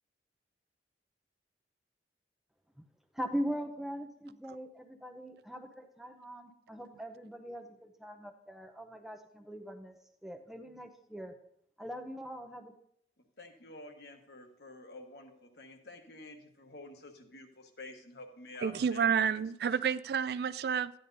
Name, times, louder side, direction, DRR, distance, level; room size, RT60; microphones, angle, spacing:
voice 1, 3.1-10.0 10.2-11.3 11.8-12.7, equal, ahead, 5 dB, 0.7 m, -41 dB
voice 2, 13.4-19.4, left 2 dB, 60° left, 4 dB, 1.3 m, -50 dB
voice 3, 18.6-20.9, right 7 dB, 60° right, 16 dB, 0.3 m, -30 dB
12.5 x 10.0 x 2.7 m, 0.70 s
head